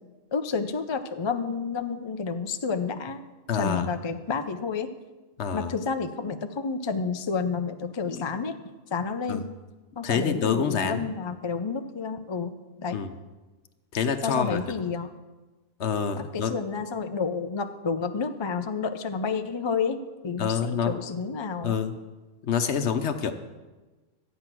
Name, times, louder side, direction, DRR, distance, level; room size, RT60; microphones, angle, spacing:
voice 1, 0.3-3.2 3.5-4.9 5.5-8.6 8.9-9.5 10.0-12.5 12.8-13.0 14.2-15.1 16.2-21.8, left 5 dB, 35° left, 8 dB, 0.4 m, -30 dB
voice 2, 3.5-3.9 5.4-5.7 8.1-8.2 9.3-9.4 10.0-11.1 12.9-13.2 13.9-14.6 15.8-16.5 20.4-20.9 21.6-21.9 22.4-23.3, left 6 dB, 60° left, 8 dB, 1.1 m, -27 dB
13.0 x 9.1 x 6.1 m, 1.2 s
omnidirectional pair, 1.4 m